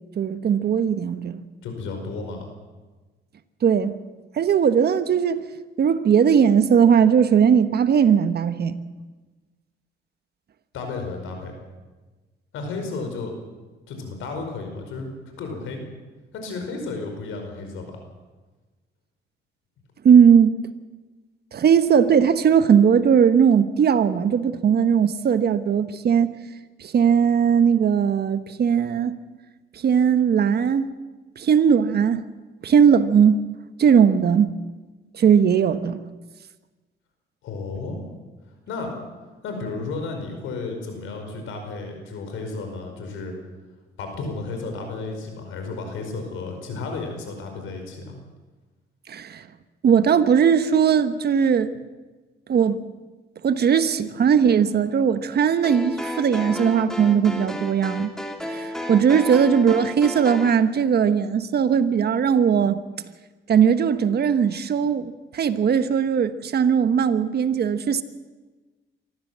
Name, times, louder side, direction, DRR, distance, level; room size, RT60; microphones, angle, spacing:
voice 1, 0.2-1.4 3.6-3.9 4.4-5.4 5.8-8.8 20.0-20.5 21.5-26.3 26.8-29.2 29.8-30.9 31.4-32.2 32.6-33.5 33.8-34.5 35.1-36.0 49.1-49.4 49.8-51.7 52.5-52.8 53.4-58.1 58.4-62.8 63.5-68.0, right 7 dB, 55° right, 1.2 m, -19 dB
voice 2, 1.6-2.5 10.7-11.5 12.5-13.3 13.9-15.1 15.4-15.8 16.3-18.0 37.4-38.0 38.7-38.9 39.4-43.3 44.0-48.1, left 3 dB, 85° left, 5.0 m, -33 dB
sound 1, 55.6-60.6, left 1 dB, 5° left, 2.6 m, -32 dB
24.0 x 14.5 x 7.5 m
cardioid pair, 90°, 20 cm